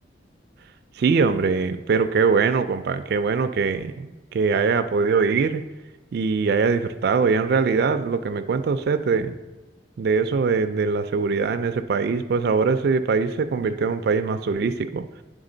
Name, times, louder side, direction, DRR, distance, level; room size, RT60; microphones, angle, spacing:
voice 1, 1.0-5.6 6.1-9.3 10.0-15.0, right 5 dB, 60° right, 8 dB, 0.3 m, -22 dB
9.0 x 3.7 x 3.8 m, 1.2 s
head